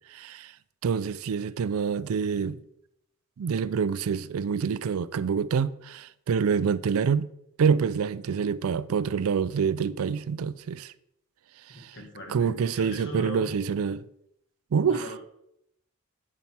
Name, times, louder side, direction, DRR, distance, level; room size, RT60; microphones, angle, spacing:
voice 1, 0.1-0.5 0.8-2.6 3.4-7.3 7.6-10.9 11.8-11.9 12.3-14.0 14.7-15.1, right 6 dB, 75° right, 0.4 m, -26 dB
voice 2, 11.7-13.5 14.9-15.2, equal, 60° left, 1.6 m, -39 dB
7.5 x 4.2 x 5.9 m
head